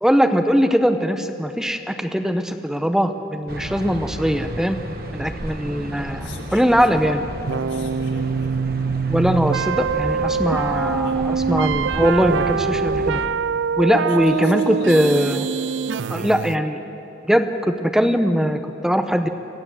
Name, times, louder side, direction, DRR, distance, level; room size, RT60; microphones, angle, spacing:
voice 1, 0.0-4.8 5.1-7.2 9.1-13.2 13.8-15.4 16.1-16.8 17.3-19.3, equal, 5° right, 7 dB, 0.8 m, -20 dB
sound 1, 3.5-13.3, right 1 dB, 55° right, 1.4 m, -32 dB
voice 2, 5.9-6.8 7.4-8.6 10.7-11.2 14.0-15.4, left 2 dB, 75° left, -1 dB, 3.6 m, -40 dB
sound 2, 7.5-16.6, right 6 dB, 85° right, 0.4 m, -24 dB
25.0 x 15.0 x 7.8 m, 2.9 s
head